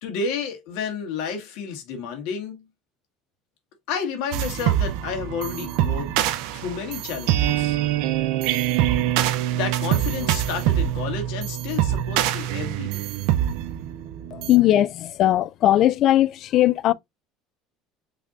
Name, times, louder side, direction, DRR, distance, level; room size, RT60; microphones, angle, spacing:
voice 1, 0.0-2.7 3.9-6.1 6.5-7.8 9.5-13.1, left 6 dB, 75° left, 2.1 m, -31 dB
loop meditations, 4.3-14.6, right 12 dB, 70° right, 0.6 m, -24 dB
voice 2, 14.3-16.9, left 13 dB, 50° left, 0.3 m, -19 dB
5.8 x 3.4 x 2.6 m
cardioid pair, 130°, 0 cm